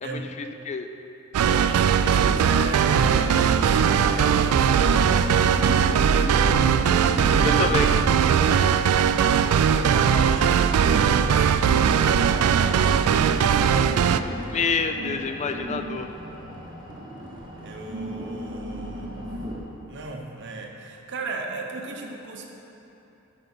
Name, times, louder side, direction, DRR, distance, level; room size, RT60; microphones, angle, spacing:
voice 1, 0.0-0.9 7.4-8.0 14.5-16.1, left 4 dB, 30° left, 7 dB, 0.3 m, -27 dB
voice 2, 1.3-6.1 9.2-14.4 17.6-19.3 19.9-22.5, right 3 dB, 55° right, 1 dB, 0.8 m, -37 dB
sound 1, 1.3-14.2, right 7 dB, 85° right, 0.3 m, -20 dB
sound 2, 2.1-19.6, equal, 20° right, 1.1 m, -36 dB
8.0 x 5.5 x 5.5 m, 3.0 s
head